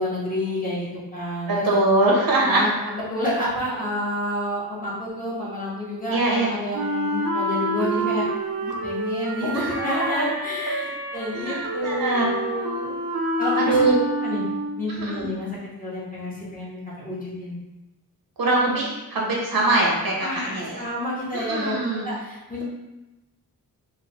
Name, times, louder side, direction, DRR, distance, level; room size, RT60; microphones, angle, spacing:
voice 1, 0.0-1.7 2.4-8.2 8.6-12.9 13.4-13.9 14.2-14.4 14.8-17.6 20.2-21.7 22.0-22.6, left 1 dB, 20° left, -8 dB, 1.1 m, -29 dB
voice 2, 1.5-2.7 6.1-6.5 9.4-10.2 11.3-12.3 13.5-14.0 14.9-15.3 18.4-20.8 21.3-22.1, right 2 dB, 70° right, -3 dB, 0.9 m, -23 dB
Wind instrument woodwind instrument, 6.7-14.9, right 1 dB, 90° right, 0.6 m, -27 dB
3.2 x 2.2 x 4.1 m, 1.0 s
wide cardioid pair, 150°, 37 cm